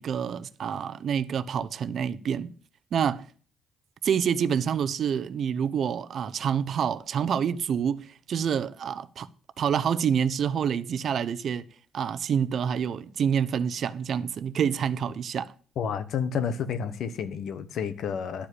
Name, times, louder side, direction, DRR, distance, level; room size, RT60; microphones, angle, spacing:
voice 1, 0.0-2.5 2.9-3.3 4.0-9.3 9.6-11.7 11.9-15.5, right 7 dB, 60° right, 0.7 m, -27 dB
voice 2, 15.8-18.5, left 7 dB, 70° left, 1.2 m, -30 dB
11.5 x 5.0 x 8.1 m
cardioid pair, 90°, 0 cm